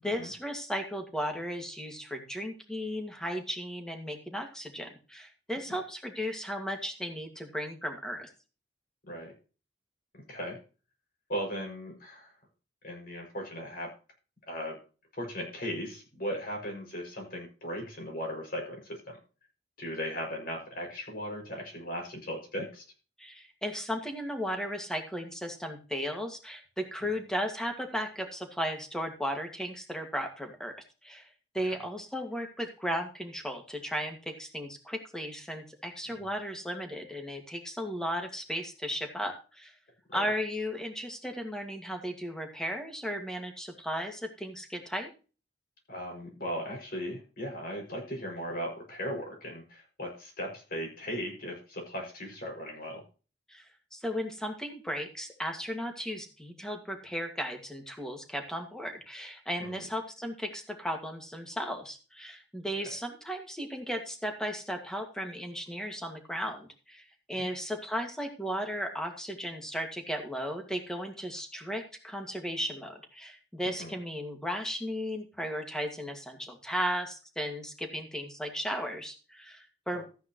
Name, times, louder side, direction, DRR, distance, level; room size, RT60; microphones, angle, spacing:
voice 1, 0.0-8.3 23.2-30.7 31.0-31.3 31.5-39.7 40.1-45.1 53.5-80.0, equal, 5° left, 4 dB, 2.0 m, -35 dB
voice 2, 10.1-10.6 11.3-12.3 12.8-13.9 14.5-14.8 15.2-19.2 19.8-22.8 31.6-31.7 36.1-36.3 40.1-40.3 45.9-53.0 59.6-59.9 67.4-67.5 73.8-74.0, equal, 55° left, 1 dB, 6.3 m, -37 dB
14.5 x 9.4 x 3.1 m, 0.35 s
head